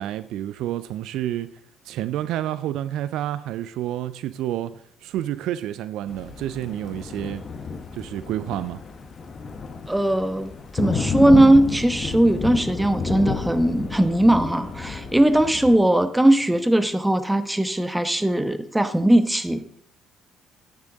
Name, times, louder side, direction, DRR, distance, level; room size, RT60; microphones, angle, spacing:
voice 1, 0.0-1.6 1.9-7.4 7.9-8.8, right 12 dB, 65° right, 0.4 m, -29 dB
Thunder, 6.1-15.8, left 4 dB, 40° left, 1.1 m, -31 dB
voice 2, 9.9-19.8, right 1 dB, 10° right, 1.0 m, -19 dB
11.0 x 9.5 x 3.9 m
figure-of-eight pair, 50°, 0 cm